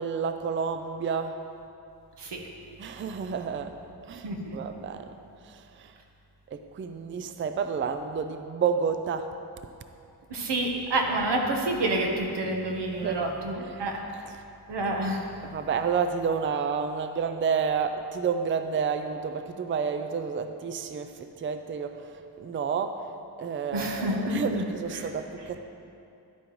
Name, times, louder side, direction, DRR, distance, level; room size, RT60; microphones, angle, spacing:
voice 1, 0.0-1.4 2.8-3.7 4.1-5.1 5.5-5.9 6.5-9.3 12.9-13.2 13.5-13.8 15.4-22.1 22.4-23.1 23.4-25.6, right 6 dB, 30° right, 8 dB, 0.4 m, -30 dB
voice 2, 4.2-4.6 10.3-14.0 14.7-15.3 23.7-24.6 24.9-25.1, right 1 dB, 90° right, 2 dB, 1.1 m, -28 dB
11.5 x 8.8 x 3.1 m, 2.6 s
wide cardioid pair, 130°, 40 cm